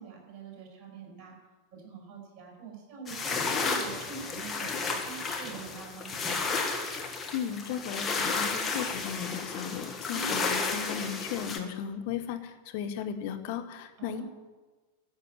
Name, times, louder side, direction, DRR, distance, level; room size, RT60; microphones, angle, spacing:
voice 1, 0.0-1.3 1.7-6.5 10.1-10.4 14.0-14.2, right 5 dB, 35° right, -1 dB, 5.6 m, -44 dB
sound 1, 3.1-11.6, left 4 dB, 20° left, 1.8 m, -32 dB
voice 2, 7.3-14.2, left 9 dB, 50° left, 6 dB, 1.4 m, -36 dB
13.0 x 6.6 x 9.3 m, 1.3 s
figure-of-eight pair, 90°, 0 cm